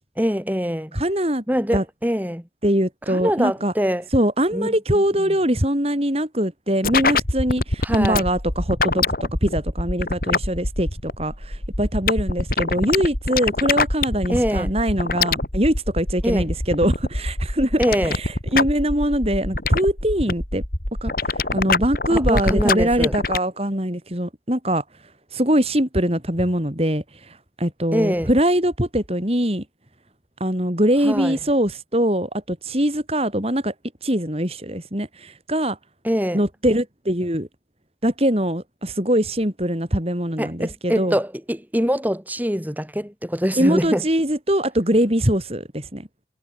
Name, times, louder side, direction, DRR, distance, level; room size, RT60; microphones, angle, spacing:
voice 1, 0.2-1.0 1.5-2.4 3.1-4.0 4.5-5.3 7.8-8.2 14.3-14.7 16.2-16.5 17.8-18.1 22.1-23.1 27.9-28.3 31.0-31.4 36.0-36.4 40.4-44.0, equal, 10° right, 7.5 m, -24 dB
voice 2, 0.9-1.4 1.7-1.8 2.6-3.7 4.1-20.6 21.0-24.8 25.3-29.6 30.4-33.7 34.0-35.8 36.3-37.5 38.0-41.2 43.6-46.1, equal, 35° right, 5.4 m, -22 dB
sound 1, 6.8-23.4, left 3 dB, 50° left, 4.1 m, -24 dB
head